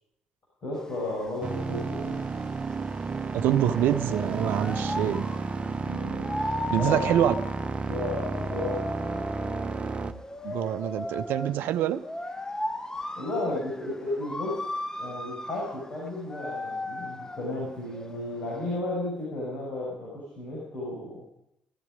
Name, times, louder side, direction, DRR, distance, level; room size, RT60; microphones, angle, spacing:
voice 1, 0.6-2.2 5.8-6.3 6.7-6.9 7.9-8.8 13.2-14.6 15.0-21.2, left 2 dB, 55° left, -6 dB, 6.5 m, -33 dB
sound 1, 0.8-18.8, left 2 dB, 15° left, 1.0 m, -37 dB
sound 2, 1.4-10.1, right 4 dB, 35° right, 0.9 m, -32 dB
voice 2, 3.3-5.3 6.7-7.3 10.4-12.0, right 11 dB, 65° right, 13 dB, 0.5 m, -25 dB
16.5 x 13.5 x 5.1 m, 0.81 s
figure-of-eight pair, 40°, 4 cm